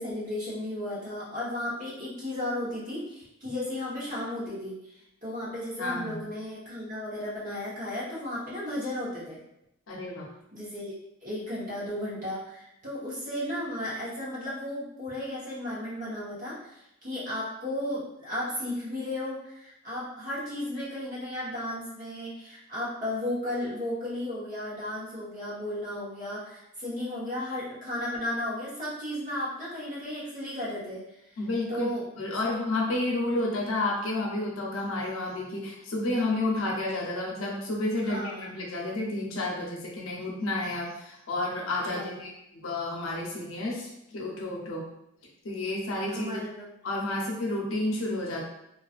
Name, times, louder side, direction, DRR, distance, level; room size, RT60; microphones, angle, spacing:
voice 1, 0.0-4.9 5.2-9.4 10.5-10.9 11.2-31.0 31.7-32.0 38.0-38.5 41.9-42.2 46.1-46.7, left 1 dB, 40° right, -8 dB, 1.0 m, -34 dB
voice 2, 5.8-6.2 9.9-10.3 31.4-31.9 32.2-44.9 45.4-46.4 46.8-48.4, left 2 dB, 80° left, -2 dB, 0.6 m, -31 dB
2.4 x 2.4 x 2.4 m, 0.82 s
head